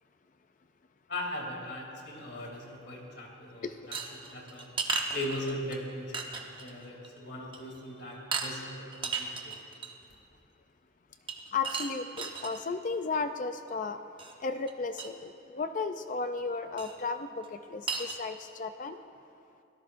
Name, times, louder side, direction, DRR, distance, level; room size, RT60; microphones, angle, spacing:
voice 1, 1.1-9.6 10.1-10.2, left 1 dB, 60° left, -1 dB, 2.9 m, -39 dB
sound 1, 3.9-5.8 6.1-6.7 7.0-7.2 7.5-7.8 8.3-8.5 8.9-10.0 11.3-12.6 14.2-14.3 14.7-14.8 15.0-15.1 16.8-17.0 17.4-17.5 17.9-18.2, right 4 dB, 25° right, 1.0 m, -34 dB
voice 2, 11.5-14.0 14.4-19.0, left 4 dB, 40° left, 9 dB, 0.4 m, -34 dB
24.5 x 17.5 x 2.6 m, 2.6 s
head